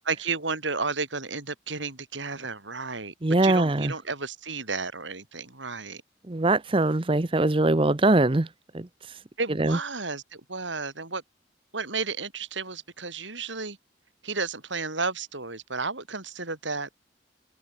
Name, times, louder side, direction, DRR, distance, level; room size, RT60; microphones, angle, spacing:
voice 1, 0.0-3.1 3.4-6.0 9.4-11.2 11.7-13.8 14.2-16.9, right 4 dB, 90° right, 6.4 m, -32 dB
voice 2, 3.2-3.9 6.3-8.5 8.7-8.9 9.6-9.8, right 2 dB, 30° right, 0.8 m, -22 dB
head